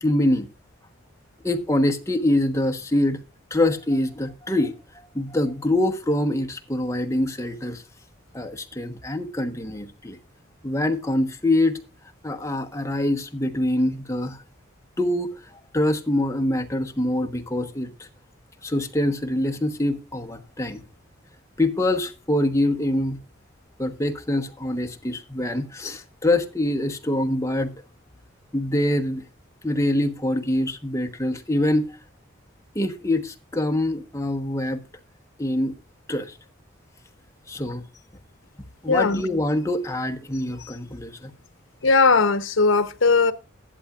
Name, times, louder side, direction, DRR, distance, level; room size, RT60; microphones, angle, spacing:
voice 1, 0.0-0.5 1.4-3.2 3.5-4.7 5.1-7.8 8.3-10.2 10.6-11.8 12.2-14.4 15.0-15.3 15.7-18.1 18.6-20.8 21.6-23.2 23.8-27.7 28.5-29.2 29.6-31.8 32.7-34.8 35.4-35.7 36.1-36.4 37.5-37.9 38.8-41.3, left 1 dB, 15° left, 1.0 m, -24 dB
voice 2, 38.9-39.2 41.8-43.3, left 4 dB, 70° left, 0.9 m, -18 dB
14.0 x 11.0 x 2.4 m
head